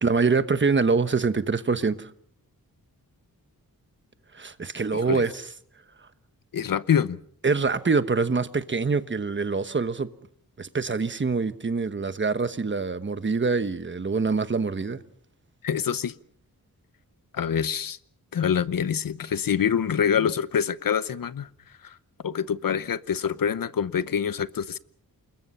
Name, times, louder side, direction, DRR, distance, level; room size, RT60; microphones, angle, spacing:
voice 1, 0.0-2.1 4.3-5.5 7.4-10.1 10.6-15.0, right 4 dB, 35° right, 1.1 m, -25 dB
voice 2, 4.9-5.2 6.5-7.2 15.6-16.1 17.3-18.0 18.3-21.5 21.8-22.0 22.2-24.8, left 8 dB, 70° left, 0.9 m, -25 dB
28.5 x 21.0 x 5.6 m
wide cardioid pair, 155°, 35 cm